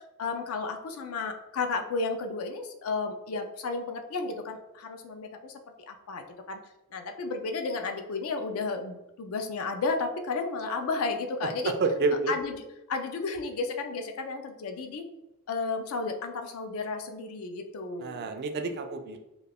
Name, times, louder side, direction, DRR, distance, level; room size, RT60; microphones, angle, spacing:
voice 1, 0.0-5.6 5.9-6.6 6.9-11.7 12.3-12.6 12.9-15.1 15.5-18.3, left 4 dB, 70° left, 6 dB, 0.4 m, -33 dB
voice 2, 11.6-12.3 18.0-19.2, right 3 dB, 50° right, 6 dB, 0.3 m, -28 dB
2.3 x 2.2 x 3.3 m, 0.96 s
head